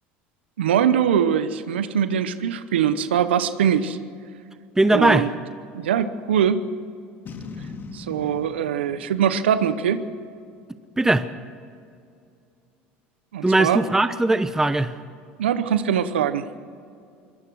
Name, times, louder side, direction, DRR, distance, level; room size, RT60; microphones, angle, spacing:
voice 1, 0.6-4.0 4.9-5.3 5.7-6.7 7.9-10.1 13.3-13.8 15.4-16.5, right 8 dB, 90° right, 12 dB, 0.9 m, -22 dB
voice 2, 4.8-5.3 11.0-11.2 13.4-14.9, right 2 dB, 10° right, 12 dB, 0.9 m, -19 dB
Boom, 7.3-10.6, left 4 dB, 35° left, 2.4 m, -40 dB
22.5 x 18.5 x 6.3 m, 2.4 s
hypercardioid pair, 80°, 6 cm